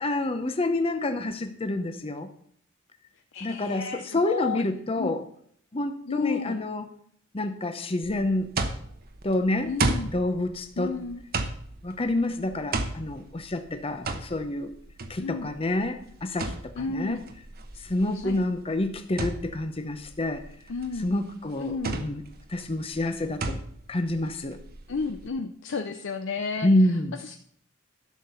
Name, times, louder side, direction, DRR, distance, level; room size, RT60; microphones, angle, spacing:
voice 1, 0.0-2.3 3.4-5.2 5.7-6.8 7.3-8.5 9.2-9.7 10.1-10.9 11.8-14.7 15.1-17.2 17.8-20.4 21.0-22.2 22.5-23.6 23.9-24.6 26.6-27.2, left 1 dB, 30° left, 7 dB, 0.7 m, -28 dB
voice 2, 3.3-4.6 4.9-5.2 6.1-6.6 9.6-10.1 10.8-11.2 15.2-15.5 16.7-17.2 18.1-18.4 20.7-21.1 21.6-22.0 24.9-27.4, left 4 dB, 65° left, 7 dB, 0.6 m, -32 dB
sound 1, 8.0-25.3, right 3 dB, 50° right, 1.0 m, -34 dB
11.5 x 6.8 x 5.6 m, 0.62 s
head